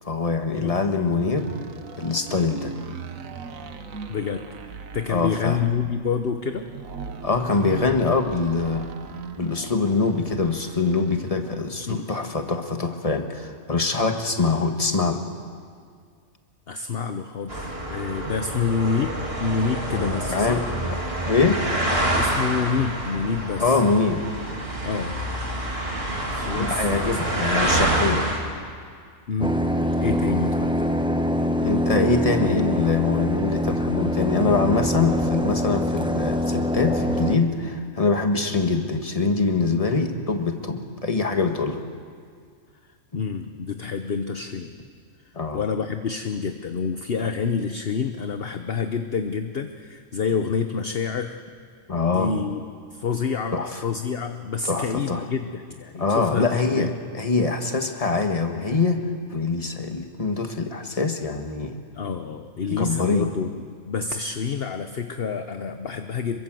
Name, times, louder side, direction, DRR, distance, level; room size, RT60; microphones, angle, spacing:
voice 1, 0.1-1.5 2.0-2.7 5.1-5.6 7.2-8.9 9.4-15.3 19.9-21.0 21.3-21.6 23.6-24.2 26.6-28.3 31.6-41.8 45.4-45.6 51.9-52.3 53.5-53.8 54.7-55.2 56.0-59.0 59.3-61.8 62.7-63.3, left 4 dB, 25° left, 5 dB, 1.7 m, -24 dB
sound 1, 0.9-11.7, right 6 dB, 85° right, 1.6 m, -39 dB
voice 2, 4.1-6.7 11.9-12.3 16.7-20.7 22.1-23.8 24.8-25.2 26.3-27.1 27.4-27.5 29.3-29.6 30.0-30.7 43.1-44.8 45.5-51.4 52.1-52.6 52.9-57.0 61.9-63.5 63.9-66.4, left 5 dB, 50° left, 7 dB, 1.1 m, -28 dB
sound 2, 17.5-28.4, right 1 dB, 50° right, 3.5 m, -27 dB
sound 3, 29.4-37.4, equal, 5° right, 1.0 m, -24 dB
27.0 x 23.0 x 7.7 m, 2.1 s
omnidirectional pair, 1.4 m